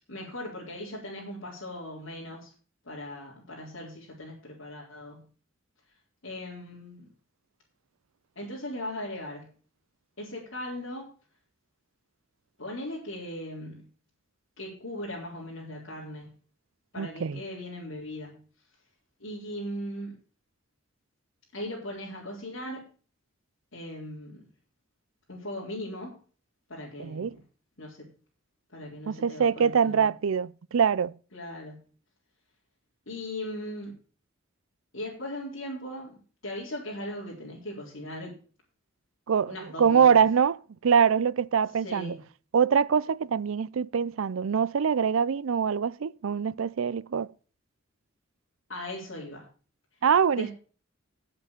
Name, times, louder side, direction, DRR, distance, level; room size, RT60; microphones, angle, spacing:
voice 1, 0.1-2.5 2.8-5.3 6.2-7.1 8.4-9.5 10.2-11.1 12.6-13.9 14.6-16.3 16.9-18.4 19.2-20.2 21.5-22.9 23.7-24.5 25.3-26.2 26.7-27.4 27.8-28.1 28.7-30.1 31.3-31.8 33.1-33.9 34.9-36.1 36.4-38.3 39.5-40.2 41.8-42.2 48.7-49.5 50.3-50.5, left 1 dB, 70° left, 4.2 m, -38 dB
voice 2, 17.0-17.4 27.0-27.4 29.1-31.1 39.3-40.6 40.8-42.1 42.5-47.3 50.0-50.5, right 7 dB, 85° right, 0.5 m, -24 dB
9.9 x 7.6 x 6.6 m
head